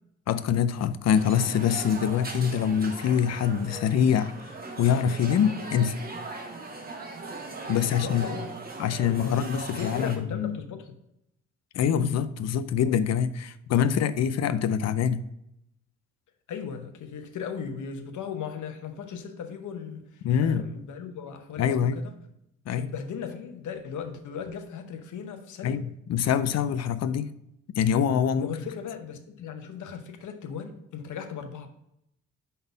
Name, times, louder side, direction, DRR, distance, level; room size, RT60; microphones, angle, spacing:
voice 1, 0.3-4.3 4.8-6.0 7.7-8.3 8.8-10.6 11.7-15.2 20.2-20.6 21.6-22.0 22.7-22.9 25.6-27.3 27.7-28.5, left 8 dB, 60° left, 0.5 m, -25 dB
sound 1, 1.1-10.2, right 3 dB, 30° right, 1.1 m, -39 dB
voice 2, 7.8-8.5 9.0-9.4 9.7-11.0 16.5-22.1 22.8-25.9 28.4-31.7, left 7 dB, 75° left, 0.9 m, -37 dB
5.4 x 4.0 x 5.2 m
cardioid pair, 110°, 30 cm